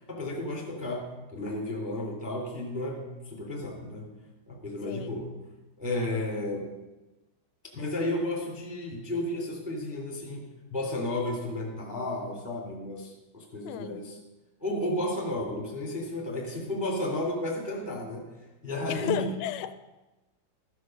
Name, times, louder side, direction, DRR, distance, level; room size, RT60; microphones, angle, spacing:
voice 1, 0.1-4.1 4.5-5.3 5.8-6.7 7.7-14.2 14.6-18.3 18.6-19.3, left 1 dB, 5° right, -1 dB, 1.5 m, -33 dB
voice 2, 13.6-14.0 18.9-19.8, left 11 dB, 80° left, 11 dB, 2.2 m, -33 dB
14.0 x 6.3 x 6.4 m, 1.1 s
omnidirectional pair, 4.8 m